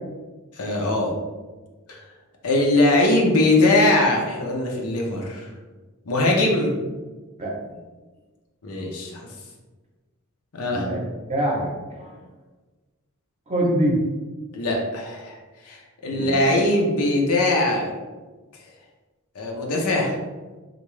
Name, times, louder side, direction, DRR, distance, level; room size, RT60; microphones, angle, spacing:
voice 1, 0.6-1.1 1.9-2.0 2.4-5.5 6.1-6.7 8.6-9.3 10.5-10.9 14.5-15.4 15.6-17.9 19.3-20.2, left 2 dB, 85° left, 0 dB, 0.7 m, -21 dB
voice 2, 7.4-7.8 10.7-11.0 11.3-12.2 13.5-14.0 16.1-16.5, right 1 dB, 30° right, -2 dB, 0.7 m, -25 dB
3.4 x 2.5 x 3.2 m, 1.3 s
head